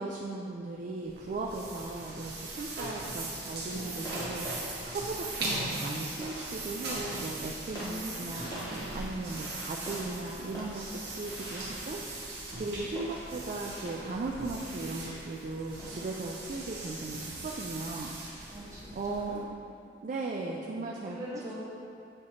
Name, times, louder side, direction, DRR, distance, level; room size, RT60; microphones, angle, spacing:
voice 1, 0.0-12.0 12.6-18.4 18.9-19.6 20.0-21.2, right 3 dB, 45° right, -1 dB, 0.4 m, -37 dB
sound 1, 1.0-19.5, right 2 dB, 60° right, 1.4 m, -40 dB
sound 2, 4.0-17.5, equal, 20° left, 0.9 m, -46 dB
voice 2, 7.8-8.7 18.5-19.4 21.0-21.5, equal, 20° right, -7 dB, 1.2 m, -42 dB
8.6 x 3.0 x 4.3 m, 2.6 s
head